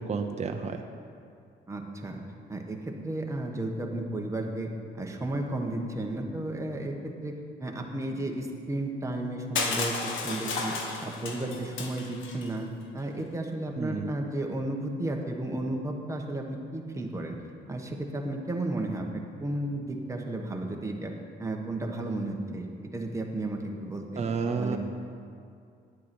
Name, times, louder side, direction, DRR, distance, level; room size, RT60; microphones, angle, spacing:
voice 1, 0.1-0.8 13.8-14.1 24.2-24.8, right 5 dB, 35° right, 4 dB, 0.8 m, -30 dB
voice 2, 1.7-2.2 2.5-4.7 4.9-7.3 7.6-10.7 11.0-12.7 12.9-17.4 17.7-21.1 21.4-22.7 22.9-24.3 24.5-24.8, right 1 dB, 15° right, 1 dB, 1.5 m, -33 dB
Crushing, 9.6-12.5, left 4 dB, 75° left, 1.5 m, -32 dB
10.0 x 8.4 x 6.2 m, 2.3 s
cardioid pair, 90°, 20 cm